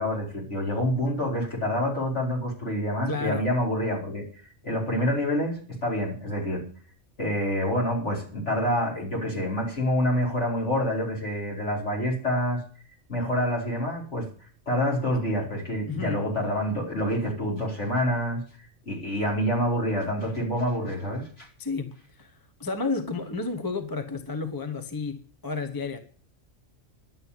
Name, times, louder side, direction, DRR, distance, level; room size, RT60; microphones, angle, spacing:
voice 1, 0.0-4.2 4.6-6.6 7.2-12.6 13.1-14.3 14.7-18.4 18.9-21.5, equal, 55° left, 4.9 m, -27 dB
voice 2, 3.1-3.5 15.9-16.2 21.6-22.3 22.6-26.0, left 4 dB, 15° left, 0.9 m, -31 dB
11.0 x 7.7 x 9.7 m
omnidirectional pair, 1.4 m